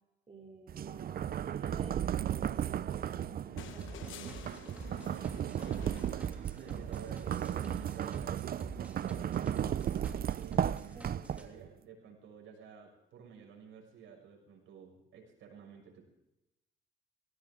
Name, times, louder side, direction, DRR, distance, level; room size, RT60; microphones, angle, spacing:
voice 1, 0.3-4.3 10.9-11.2, right 3 dB, 30° right, -2 dB, 3.2 m, -52 dB
sound 1, 0.7-11.7, right 10 dB, 50° right, 0.6 m, -35 dB
sound 2, 3.6-6.9 8.4-8.5, left 11 dB, 80° left, 1.1 m, -51 dB
sound 3, 3.8-11.5, right 1 dB, 5° right, 3.0 m, -49 dB
voice 2, 6.5-9.6 10.3-16.0, right 6 dB, 80° right, 1 dB, 6.4 m, -52 dB
19.0 x 17.5 x 3.8 m, 0.93 s
cardioid pair, 90°, 20 cm